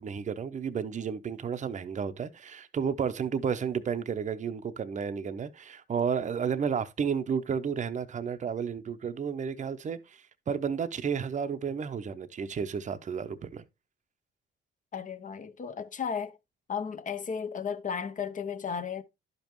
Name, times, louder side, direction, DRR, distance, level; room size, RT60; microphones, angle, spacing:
voice 1, 0.0-13.6, right 6 dB, 40° right, 0.7 m, -32 dB
voice 2, 14.9-16.4 16.7-19.0, left 6 dB, 40° left, 0.9 m, -34 dB
11.5 x 5.2 x 3.0 m
cardioid pair, 90°, 20 cm